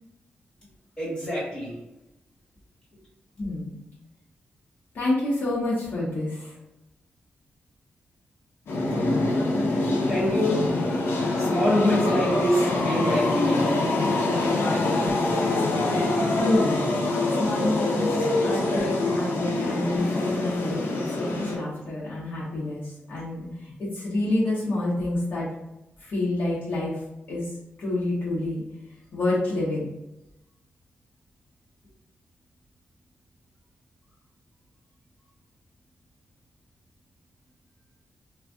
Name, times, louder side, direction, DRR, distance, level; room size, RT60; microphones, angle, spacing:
voice 1, 1.0-1.7 10.1-10.6 11.4-13.8, left 1 dB, 20° left, -7 dB, 1.5 m, -25 dB
voice 2, 3.4-3.8 4.9-6.6 16.4-16.8 17.3-25.5 26.0-27.0 27.3-27.5 27.8-28.6 29.1-29.9, left 2 dB, 60° left, -8 dB, 0.9 m, -28 dB
sound 1, 8.7-21.6, left 2 dB, 85° left, 0.6 m, -25 dB
2.5 x 2.3 x 3.4 m, 0.93 s
wide cardioid pair, 150°, 4 cm